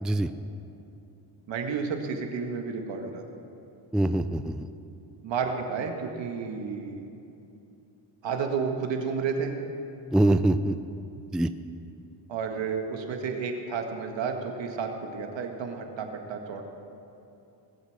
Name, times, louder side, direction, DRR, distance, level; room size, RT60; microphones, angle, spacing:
voice 1, 1.5-3.2 5.2-7.1 8.2-9.5 12.3-16.6, right 5 dB, 75° right, 4 dB, 1.8 m, -31 dB
voice 2, 3.9-4.7 10.1-10.8 11.3-11.5, right 1 dB, ahead, 11 dB, 0.3 m, -23 dB
20.0 x 8.2 x 6.6 m, 2.7 s
cardioid pair, 90°, 45 cm